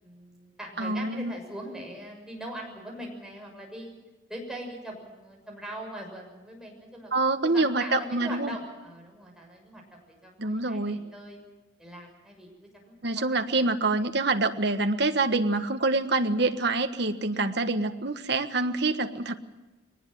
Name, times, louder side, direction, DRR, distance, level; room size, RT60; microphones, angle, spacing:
voice 1, 0.0-3.9 4.3-11.4 11.8-13.7 17.3-17.5, right 1 dB, 5° right, -1 dB, 6.6 m, -42 dB
voice 2, 0.8-1.3 7.1-8.5 10.4-11.0 13.0-19.3, right 2 dB, 55° right, 7 dB, 1.4 m, -26 dB
22.5 x 19.5 x 7.8 m, 1.1 s
head